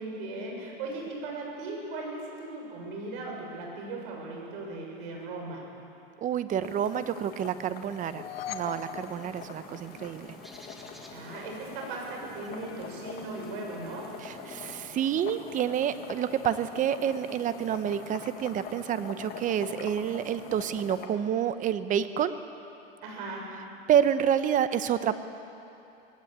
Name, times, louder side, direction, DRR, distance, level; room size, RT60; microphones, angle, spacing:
voice 1, 0.0-5.8 11.1-14.2 23.0-23.7, right 2 dB, 60° right, 0 dB, 6.8 m, -38 dB
voice 2, 6.2-10.3 14.2-22.3 23.9-25.2, right 9 dB, 25° right, 12 dB, 0.9 m, -28 dB
sound 1, 6.6-21.1, left 6 dB, 30° left, 2.0 m, -44 dB
sound 2, 7.9-10.2, left 7 dB, 80° left, 1.7 m, -41 dB
Bird, 9.0-15.0, equal, ahead, 1.8 m, -50 dB
20.0 x 17.0 x 9.0 m, 2.8 s
supercardioid pair, 130°, 29 cm